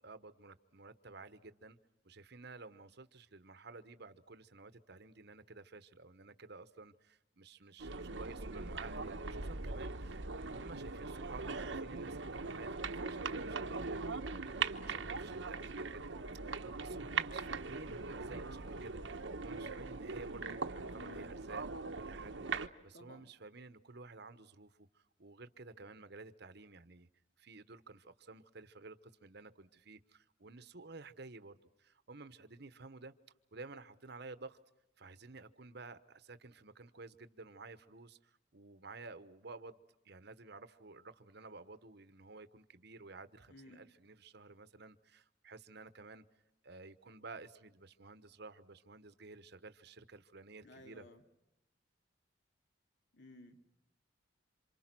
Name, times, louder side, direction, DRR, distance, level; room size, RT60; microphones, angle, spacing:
voice 1, 0.0-1.8 2.0-27.1 27.4-33.1 33.5-34.6 35.0-46.2 46.6-51.1, right 3 dB, 60° right, 1.2 m, -53 dB
sound 1, 7.8-22.7, right 4 dB, 75° right, 1.2 m, -41 dB
voice 2, 20.9-21.4 22.9-23.3 43.5-43.8 50.6-51.2 53.1-53.6, left 1 dB, 65° left, 3.0 m, -56 dB
28.0 x 27.0 x 6.2 m
head